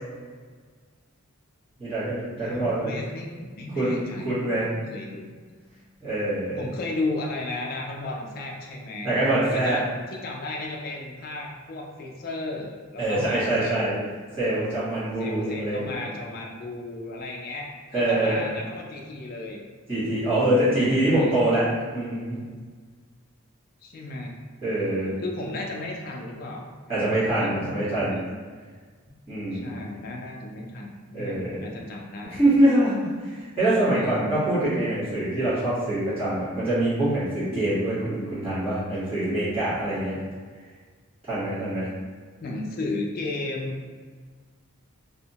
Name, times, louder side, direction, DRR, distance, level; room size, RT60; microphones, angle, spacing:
voice 1, 1.8-2.9 3.7-4.7 6.0-6.6 9.0-9.8 13.0-13.9 14.4-15.9 17.9-18.4 19.9-22.4 24.6-25.2 26.9-28.1 29.3-29.8 31.1-31.6 32.4-40.2 41.3-41.9, right 1 dB, 25° right, -13 dB, 1.4 m, -24 dB
voice 2, 2.4-4.5 4.9-5.4 6.6-9.1 9.4-14.1 15.2-19.6 20.7-21.6 23.8-24.3 25.2-28.2 29.5-32.4 33.9-34.4 42.4-43.8, left 2 dB, 40° left, 0 dB, 0.3 m, -34 dB
2.7 x 2.0 x 2.8 m, 1.5 s
head